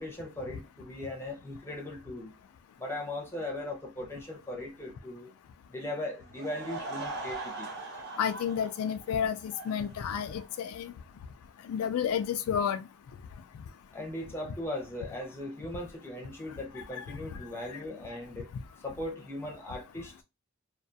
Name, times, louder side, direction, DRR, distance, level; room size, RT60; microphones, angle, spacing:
voice 1, 0.0-2.3 2.8-5.3 5.7-7.7 13.9-18.5 18.8-20.1, left 1 dB, 10° left, 0.6 m, -38 dB
Laughter / Crowd, 6.2-10.7, right 3 dB, 55° right, 0.9 m, -41 dB
voice 2, 8.2-10.9 11.7-12.8 17.0-17.1, left 8 dB, 80° left, 0.3 m, -31 dB
2.3 x 2.2 x 2.6 m
head